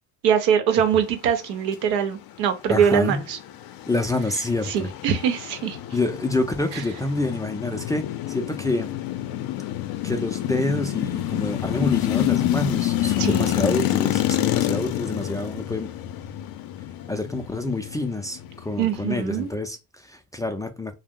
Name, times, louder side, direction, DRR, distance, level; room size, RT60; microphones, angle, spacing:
voice 1, 0.2-3.4 4.7-5.8 6.7-6.8 13.2-13.8 18.8-19.5, right 8 dB, 85° right, 0.8 m, -23 dB
voice 2, 2.7-3.2 3.9-4.9 5.9-8.9 10.0-15.9 17.1-21.0, left 2 dB, 10° left, 0.3 m, -27 dB
sound 1, 2.8-19.5, left 14 dB, 60° left, 0.5 m, -28 dB
2.7 x 2.0 x 3.6 m
supercardioid pair, 85°, 40 cm